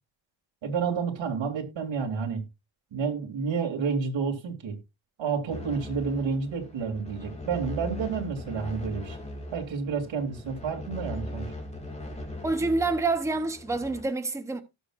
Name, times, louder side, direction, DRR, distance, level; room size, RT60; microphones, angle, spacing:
voice 1, 0.6-2.4 2.9-4.8 5.2-9.2 9.5-11.5, right 5 dB, 70° right, 2.9 m, -30 dB
sound 1, 5.5-14.0, left 1 dB, 15° left, 2.5 m, -39 dB
voice 2, 12.4-14.6, right 3 dB, 5° right, 0.8 m, -27 dB
17.5 x 6.4 x 2.5 m
wide cardioid pair, 165°, 47 cm